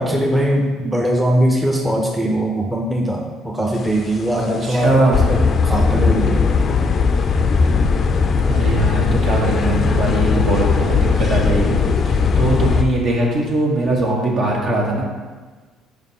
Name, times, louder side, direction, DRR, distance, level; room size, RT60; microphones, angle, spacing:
voice 1, 0.0-6.7, equal, 10° right, 0 dB, 0.8 m, -20 dB
sound 1, 3.9-4.2 4.7-4.8 5.1-12.8, left 5 dB, 45° left, 0.4 m, -17 dB
voice 2, 4.6-5.2 8.4-11.8 12.0-15.0, right 2 dB, 60° right, -2 dB, 1.4 m, -20 dB
5.1 x 5.0 x 4.2 m, 1.4 s
supercardioid pair, 85°, 0 cm